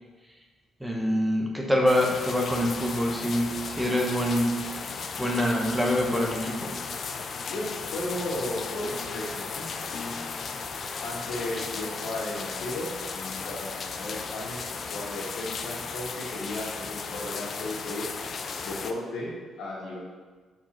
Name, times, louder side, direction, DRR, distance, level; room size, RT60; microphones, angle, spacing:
voice 1, 0.8-4.6 5.2-6.7 13.4-13.5 18.6-18.7, equal, 5° right, 0 dB, 1.0 m, -25 dB
sound 1, 1.9-18.9, left 5 dB, 50° left, 0.5 m, -35 dB
voice 2, 7.3-10.2 11.0-18.1 18.6-20.0, left 1 dB, 80° left, -4 dB, 2.0 m, -35 dB
5.1 x 4.4 x 5.9 m, 1.4 s
cardioid pair, 90°, 0 cm